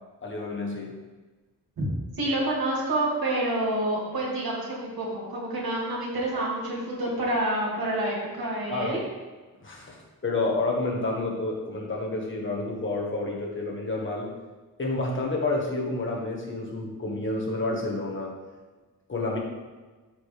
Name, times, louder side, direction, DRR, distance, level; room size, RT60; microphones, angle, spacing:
voice 1, 0.2-1.0 8.7-9.0 9.6-14.3 14.8-18.3 19.1-19.4, left 2 dB, 35° left, -2 dB, 1.6 m, -29 dB
voice 2, 2.2-9.0, right 1 dB, 90° right, -4 dB, 2.6 m, -28 dB
12.0 x 5.0 x 3.4 m, 1.3 s
wide cardioid pair, 145°, 35 cm